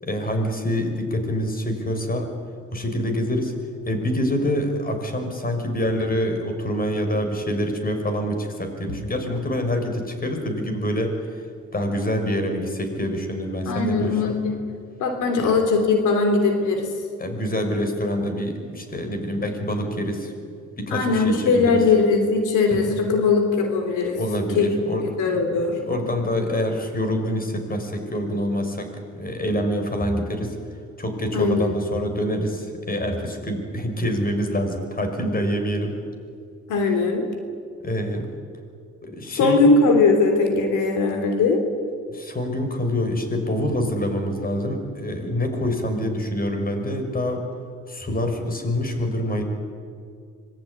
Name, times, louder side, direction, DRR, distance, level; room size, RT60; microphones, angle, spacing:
voice 1, 0.0-2.3 2.7-3.6 3.9-11.5 11.7-14.4 15.4-15.6 17.2-20.3 20.8-21.8 22.7-23.0 24.1-30.6 31.0-36.0 37.8-38.3 39.0-39.7 42.1-47.5 47.9-49.4, equal, 30° left, 5 dB, 5.8 m, -26 dB
voice 2, 13.7-14.6 15.0-16.9 20.9-24.2 24.5-24.7 25.2-25.8 31.3-31.7 36.7-37.2 39.3-41.6, left 4 dB, 85° left, 5 dB, 3.5 m, -20 dB
25.5 x 22.0 x 9.8 m, 2.2 s
cardioid pair, 90°, 30 cm